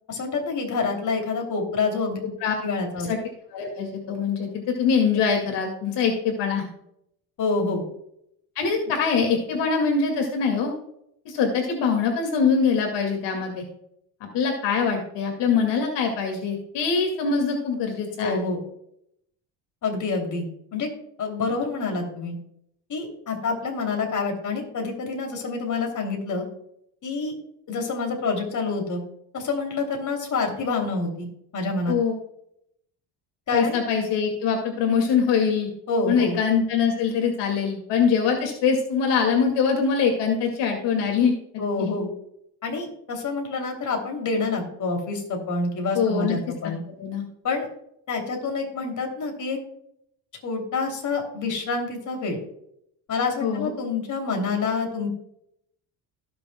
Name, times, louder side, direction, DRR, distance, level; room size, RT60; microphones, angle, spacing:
voice 1, 0.1-2.2 2.6-3.1 7.4-7.8 18.2-18.6 19.8-20.9 21.2-22.3 22.9-26.5 27.0-27.3 27.7-29.0 29.3-31.3 31.5-32.0 33.5-33.8 35.9-36.4 41.6-42.1 42.6-46.8 47.4-47.7 48.1-49.6 50.4-52.4 53.1-55.1, left 4 dB, 45° left, 2 dB, 3.0 m, -27 dB
voice 2, 2.2-2.5 3.1-3.2 3.5-6.7 8.6-10.7 11.3-13.6 14.3-18.4 31.9-32.2 33.5-35.7 36.1-42.0 45.9-46.4 47.0-47.2 53.4-53.7, left 6 dB, 75° left, 2 dB, 2.3 m, -23 dB
17.5 x 6.9 x 2.3 m, 0.75 s
cardioid pair, 105°, 42 cm